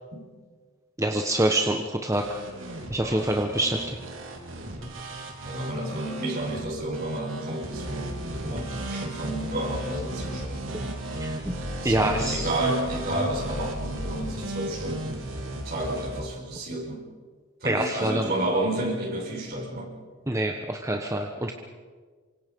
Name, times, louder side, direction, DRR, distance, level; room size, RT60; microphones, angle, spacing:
voice 1, 1.0-2.4 2.9-4.0 11.2-11.3 11.8-12.5 17.6-18.3 20.3-21.5, right 1 dB, 15° right, 3 dB, 1.3 m, -26 dB
sound 1, 2.1-16.2, right 1 dB, 65° right, 3.6 m, -35 dB
voice 2, 5.4-11.0 11.8-17.0 17.6-19.9, right 1 dB, 50° right, -3 dB, 5.3 m, -31 dB
28.0 x 25.0 x 5.4 m, 1.5 s
head